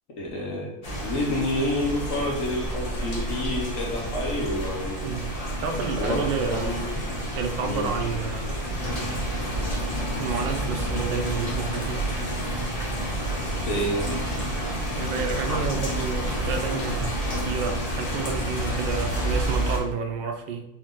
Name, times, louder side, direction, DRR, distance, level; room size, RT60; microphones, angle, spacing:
voice 1, 0.2-5.2 6.0-6.8 7.6-7.9 13.6-14.1, left 1 dB, 55° left, -2 dB, 1.0 m, -29 dB
sound 1, 0.8-19.8, right 1 dB, 35° left, 0.6 m, -29 dB
voice 2, 5.6-6.9 7.3-8.5 9.3-12.1 14.9-17.2 17.4-20.7, right 5 dB, 85° right, 6 dB, 1.3 m, -30 dB
4.2 x 2.7 x 3.6 m, 0.89 s
omnidirectional pair, 2.0 m